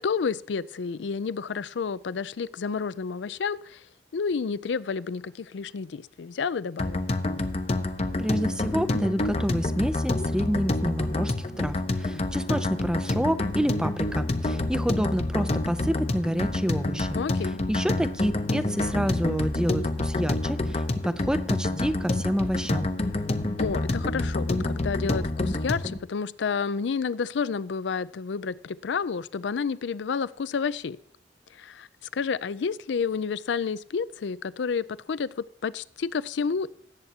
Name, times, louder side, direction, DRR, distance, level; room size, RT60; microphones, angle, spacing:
voice 1, 0.0-3.9 4.1-7.1 17.1-17.6 23.6-31.0 31.5-36.7, left 5 dB, 75° left, 18 dB, 0.4 m, -30 dB
sound 1, 6.8-26.0, left 2 dB, 35° left, 0.7 m, -28 dB
voice 2, 8.2-17.2 17.7-22.9, equal, 5° right, 12 dB, 0.4 m, -28 dB
18.5 x 8.0 x 2.8 m, 0.66 s
head